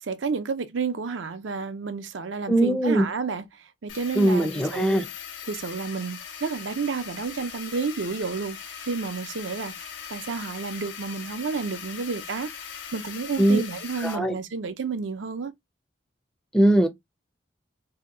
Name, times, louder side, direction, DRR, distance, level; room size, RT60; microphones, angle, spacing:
voice 1, 0.0-5.0 5.5-8.6 8.8-15.5, right 5 dB, 80° right, 0.5 m, -31 dB
voice 2, 2.5-3.1 4.1-5.0 13.4-13.6 14.0-14.4 16.5-16.9, right 1 dB, 5° left, 0.4 m, -20 dB
sound 1, 3.9-14.1, left 7 dB, 70° left, 0.7 m, -40 dB
2.8 x 2.1 x 3.7 m
head